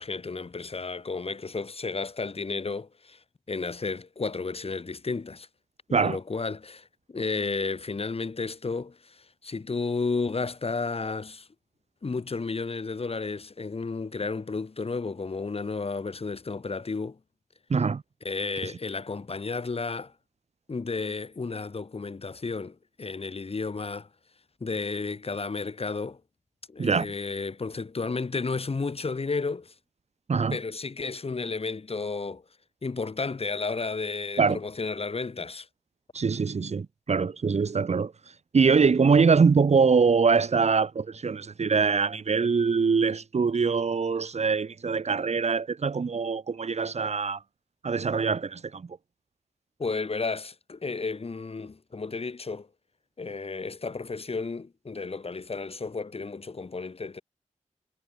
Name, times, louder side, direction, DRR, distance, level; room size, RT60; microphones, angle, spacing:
voice 1, 0.0-3.2 3.5-5.5 6.0-11.5 12.0-17.2 18.2-20.1 20.7-24.1 24.6-26.2 26.7-29.7 30.5-32.4 32.8-35.7 49.8-52.7 53.2-57.2, left 4 dB, 50° left, 6.1 m, -32 dB
voice 2, 17.7-18.0 18.6-18.7 26.8-27.1 30.3-30.6 34.4-34.6 36.1-38.1 38.5-47.4 47.8-48.9, right 5 dB, 60° right, 1.7 m, -23 dB
cardioid pair, 65°, 13 cm